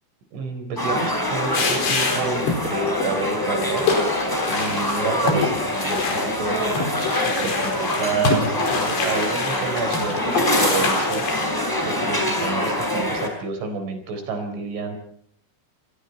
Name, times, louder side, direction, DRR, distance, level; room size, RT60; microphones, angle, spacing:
voice 1, 0.3-15.0, right 4 dB, 75° right, 6 dB, 6.8 m, -30 dB
sound 1, 0.8-13.3, left 1 dB, 5° left, 4.9 m, -25 dB
sound 2, 1.5-2.6 2.9-3.1 3.6-11.5, left 4 dB, 60° left, 6.8 m, -26 dB
29.5 x 25.0 x 4.4 m, 0.63 s
omnidirectional pair, 5.6 m